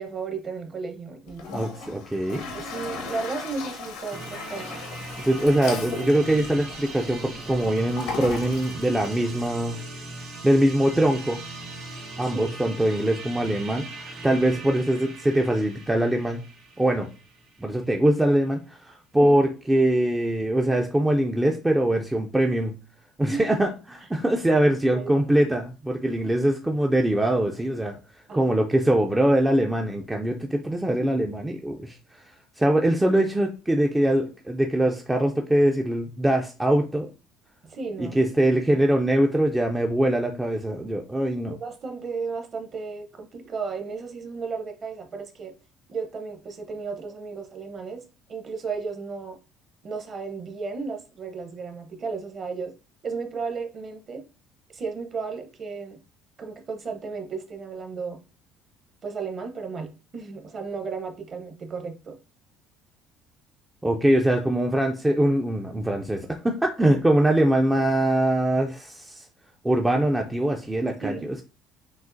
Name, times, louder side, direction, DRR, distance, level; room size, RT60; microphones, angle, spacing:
voice 1, 0.0-1.5 2.5-4.7 12.2-12.5 19.2-19.4 23.3-23.6 24.9-25.1 28.3-28.6 37.6-38.2 41.5-45.5 45.9-48.0 48.3-49.4 49.8-52.7 53.0-54.2 54.7-56.0 56.4-58.2 59.0-62.2 71.0-71.3, right 4 dB, 30° right, 5 dB, 0.7 m, -34 dB
Toilet flush, 1.3-9.5, left 3 dB, 85° left, 0.8 m, -37 dB
voice 2, 1.5-2.4 5.2-9.8 10.4-11.4 12.2-16.4 16.8-17.1 17.6-22.7 23.2-28.0 28.3-32.2 32.6-37.1 38.0-41.6 63.8-69.3 69.6-71.4, right 1 dB, 10° right, 2 dB, 0.4 m, -23 dB
sound 1, 4.1-17.8, right 2 dB, 60° right, 2.1 m, -39 dB
6.1 x 2.4 x 2.6 m, 0.32 s
cardioid pair, 150°, 0 cm